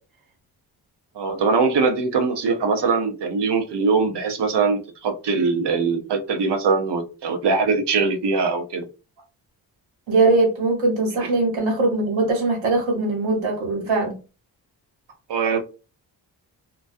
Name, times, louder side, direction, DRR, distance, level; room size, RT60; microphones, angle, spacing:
voice 1, 1.2-8.9 15.3-15.6, right 4 dB, 60° right, 0.7 m, -22 dB
voice 2, 10.1-14.1, right 2 dB, 75° right, 1.2 m, -21 dB
2.3 x 2.2 x 2.5 m
supercardioid pair, 40°, 47 cm